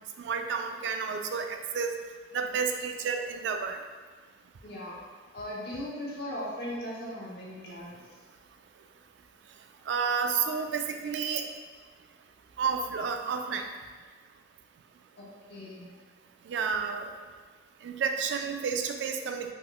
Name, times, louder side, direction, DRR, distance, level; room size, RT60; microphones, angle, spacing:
voice 1, 0.2-1.9 2.3-3.8 9.9-11.4 12.6-13.6 16.5-17.1 17.8-19.5, right 6 dB, 70° right, 5 dB, 0.3 m, -30 dB
voice 2, 4.6-5.0 5.3-7.9 15.2-15.9, left 1 dB, 65° left, -5 dB, 0.9 m, -38 dB
3.7 x 3.1 x 2.3 m, 1.5 s
head